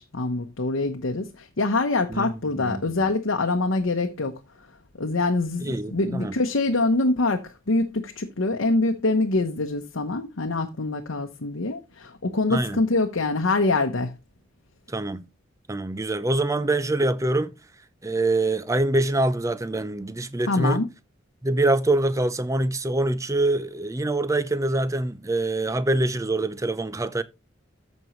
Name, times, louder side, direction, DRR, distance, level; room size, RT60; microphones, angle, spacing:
voice 1, 0.0-4.4 5.0-14.1 20.5-20.8, left 2 dB, 80° left, 0.9 m, -24 dB
voice 2, 2.1-2.9 5.6-6.4 12.5-12.8 14.9-15.2 15.7-17.5 18.0-20.8 21.4-27.2, right 2 dB, 15° right, 0.5 m, -25 dB
14.0 x 5.3 x 3.1 m
head